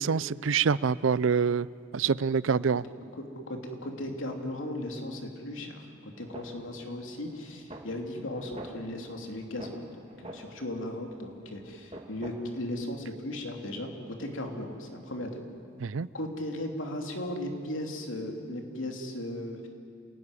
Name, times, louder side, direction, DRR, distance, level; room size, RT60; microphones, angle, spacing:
voice 1, 0.0-1.7 1.9-2.8 15.8-16.1, right 6 dB, 80° right, 20 dB, 0.5 m, -26 dB
voice 2, 2.4-9.9 10.2-15.4 16.1-19.7, left 1 dB, 85° left, 3 dB, 3.0 m, -37 dB
sound 1, 6.1-12.6, right 1 dB, 30° right, 2.1 m, -48 dB
27.5 x 17.5 x 9.9 m, 2.7 s
head